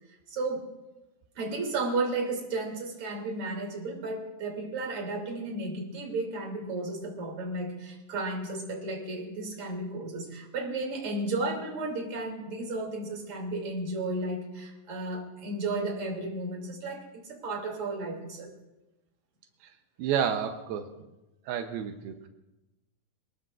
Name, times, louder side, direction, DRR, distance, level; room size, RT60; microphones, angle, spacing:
voice 1, 0.3-0.6 1.3-18.5, right 2 dB, 40° right, 0 dB, 3.4 m, -33 dB
voice 2, 20.0-20.9 21.5-22.3, right 8 dB, 85° right, 5 dB, 2.7 m, -30 dB
26.0 x 19.5 x 2.5 m, 1.0 s
omnidirectional pair, 4.3 m